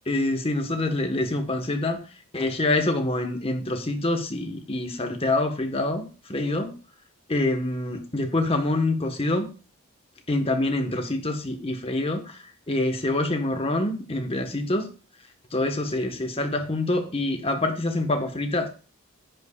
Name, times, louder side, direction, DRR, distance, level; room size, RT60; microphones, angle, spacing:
voice 1, 0.1-2.0 2.3-6.7 7.3-9.5 10.3-12.4 12.7-14.9 15.5-18.7, left 2 dB, 25° left, 1.2 m, -26 dB
10.5 x 8.5 x 2.4 m
head